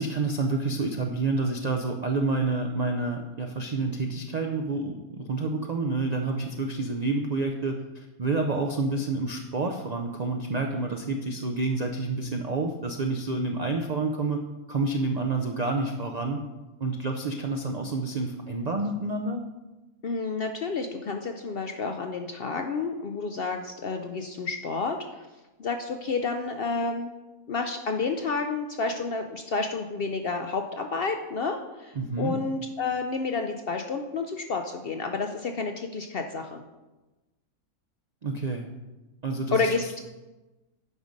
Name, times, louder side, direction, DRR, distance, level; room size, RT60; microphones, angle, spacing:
voice 1, 0.0-14.4 14.7-16.4 16.8-19.4 32.0-32.4 38.2-38.7 39.2-39.7, right 3 dB, 60° right, 3 dB, 0.4 m, -28 dB
voice 2, 20.0-25.3 25.6-27.1 27.5-36.6 39.5-40.0, left 4 dB, 60° left, 5 dB, 0.6 m, -30 dB
8.5 x 5.3 x 5.1 m, 1.1 s
omnidirectional pair, 1.5 m